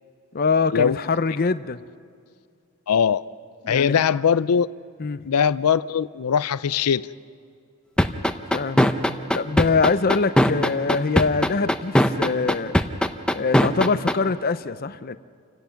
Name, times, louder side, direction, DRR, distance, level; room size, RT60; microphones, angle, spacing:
voice 1, 0.3-1.8 3.6-3.9 5.0-5.2 8.5-8.9 9.3-12.8 13.3-15.2, left 4 dB, 40° left, 14 dB, 0.6 m, -23 dB
voice 2, 2.9-3.2 3.7-4.7 5.3-7.1, left 7 dB, 90° left, 17 dB, 0.5 m, -20 dB
sound 1, 8.0-14.1, equal, 5° left, 0.7 m, -18 dB
29.0 x 17.0 x 5.8 m, 2.2 s
head